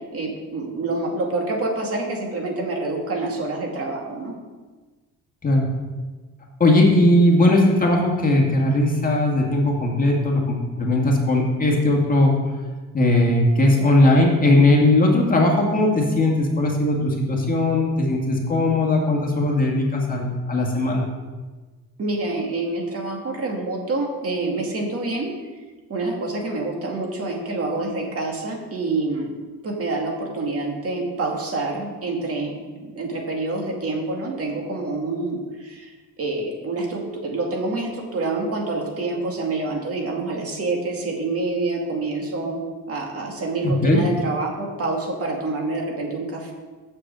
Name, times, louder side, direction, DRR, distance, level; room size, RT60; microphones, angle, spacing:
voice 1, 0.1-4.3 22.0-25.3 25.9-29.3 29.6-35.9 36.2-46.5, right 2 dB, 45° right, 1 dB, 2.2 m, -27 dB
voice 2, 6.6-12.3 12.9-21.1 43.6-44.0, left 1 dB, 25° left, -1 dB, 2.0 m, -18 dB
7.0 x 6.7 x 7.5 m, 1.3 s
cardioid pair, 120°, 31 cm